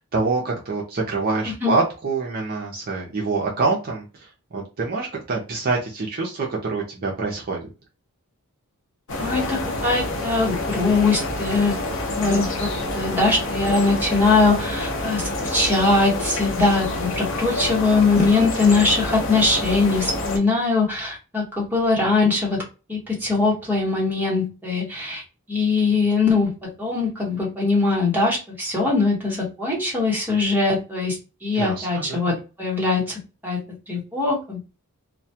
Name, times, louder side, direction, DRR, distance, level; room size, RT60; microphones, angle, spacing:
voice 1, 0.0-7.6 31.6-32.3, right 3 dB, 45° right, -1 dB, 0.5 m, -26 dB
voice 2, 1.5-1.8 9.2-11.7 12.1-12.7 12.9-22.6 22.9-25.2 25.5-33.6 33.9-34.6, left 3 dB, 10° right, -3 dB, 0.9 m, -21 dB
sound 1, 9.1-20.4, left 2 dB, 60° left, 0.6 m, -27 dB
2.2 x 2.1 x 2.7 m, 0.31 s
head